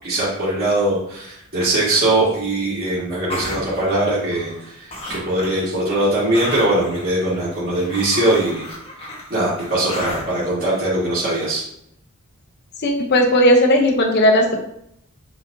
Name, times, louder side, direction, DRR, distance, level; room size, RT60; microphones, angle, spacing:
voice 1, 0.0-8.7 9.3-11.6, right 1 dB, 45° right, -11 dB, 1.6 m, -21 dB
sound 1, 3.3-4.7 4.9-5.7 6.0-10.5, left 1 dB, 25° left, 1.0 m, -33 dB
voice 2, 12.8-14.6, equal, 50° left, 1 dB, 0.7 m, -15 dB
6.2 x 3.2 x 2.6 m, 0.74 s
head